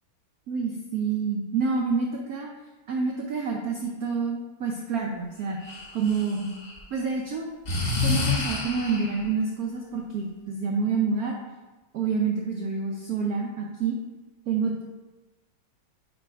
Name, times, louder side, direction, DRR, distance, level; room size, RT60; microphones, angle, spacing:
voice 1, 0.5-2.5 2.9-6.5 6.9-7.5 8.0-11.4 11.9-14.0 14.5-14.8, right 5 dB, 75° right, 0 dB, 0.8 m, -28 dB
Breathing, 5.6-6.8 7.6-9.2, left 3 dB, 40° left, 0.8 m, -28 dB
6.5 x 3.2 x 4.5 m, 1.1 s
omnidirectional pair, 2.2 m